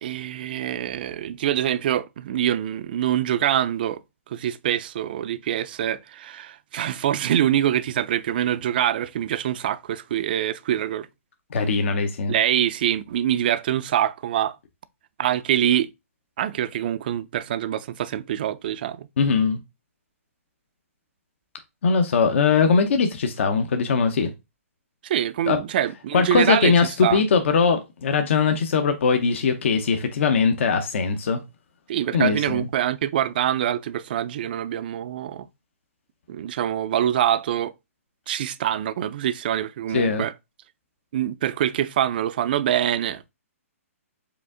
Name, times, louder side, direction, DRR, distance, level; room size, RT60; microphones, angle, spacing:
voice 1, 0.0-4.0 4.3-11.1 12.3-14.6 15.2-15.9 16.4-19.1 25.0-26.7 27.0-27.2 31.9-35.5 36.3-37.7 38.3-40.3 41.1-43.2, right 11 dB, 40° right, 0.4 m, -25 dB
voice 2, 11.5-12.3 19.2-19.6 21.8-24.3 25.4-25.6 26.1-31.4 32.1-32.7 39.9-40.2, left 5 dB, 55° left, 0.8 m, -21 dB
4.9 x 2.5 x 3.7 m
hypercardioid pair, 160°, 8 cm